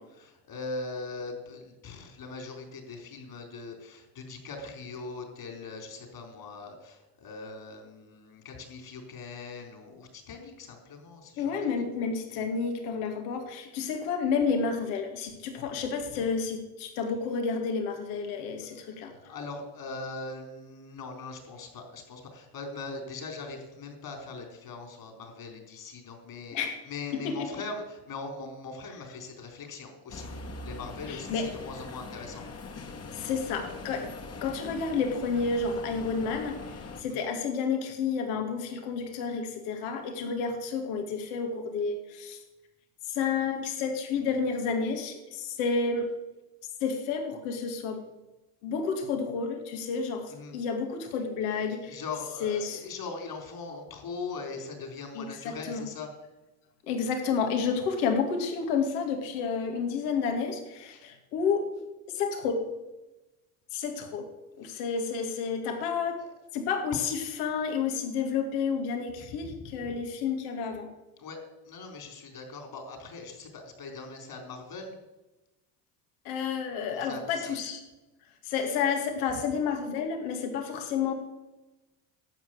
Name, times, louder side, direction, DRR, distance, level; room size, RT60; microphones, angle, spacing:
voice 1, 0.0-11.6 16.1-16.2 18.6-30.3 30.6-32.5 37.0-37.2 50.3-50.6 51.5-56.1 64.6-64.8 66.2-66.3 69.2-69.9 71.2-71.4 71.7-75.0 76.9-77.6, left 3 dB, 50° left, 4 dB, 4.3 m, -41 dB
voice 2, 11.4-19.1 26.5-26.7 27.2-27.5 31.1-31.5 33.1-34.1 34.4-36.6 37.0-42.4 43.1-46.1 46.8-48.1 48.6-52.0 52.4-52.8 55.2-55.8 56.9-61.7 62.1-62.7 63.7-64.3 64.6-66.2 66.5-70.9 76.2-77.8 78.4-81.1, left 5 dB, 75° left, 4 dB, 2.4 m, -30 dB
sound 1, 30.1-37.0, left 3 dB, 35° left, 1.8 m, -42 dB
12.0 x 8.1 x 7.9 m, 1.1 s
hypercardioid pair, 80°, 45 cm